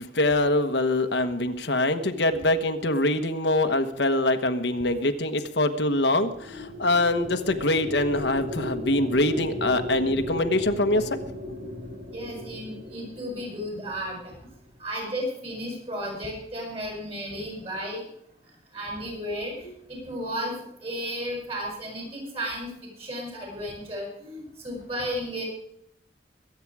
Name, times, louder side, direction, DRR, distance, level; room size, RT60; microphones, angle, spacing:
voice 1, 0.0-11.2, left 1 dB, 75° left, 7 dB, 1.3 m, -24 dB
sound 1, 6.0-14.4, left 1 dB, 75° right, 3.5 m, -36 dB
voice 2, 12.1-14.3 14.8-18.0 18.7-25.4, equal, 35° right, 0 dB, 7.4 m, -34 dB
22.5 x 8.9 x 4.9 m, 0.73 s
head